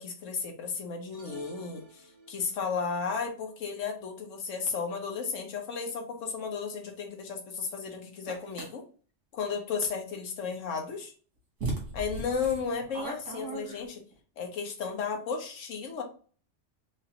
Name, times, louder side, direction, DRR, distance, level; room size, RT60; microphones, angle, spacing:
voice 1, 0.0-8.8 9.3-11.1 11.9-14.0 14.4-16.0, left 5 dB, 85° left, 3 dB, 1.2 m, -34 dB
sound 1, 1.1-2.7, right 1 dB, 55° right, 1.9 m, -48 dB
sound 2, 8.3-8.7 10.9-11.0 11.6-14.1, right 2 dB, 75° right, 1.7 m, -37 dB
4.8 x 2.5 x 2.8 m, 0.41 s
omnidirectional pair, 1.3 m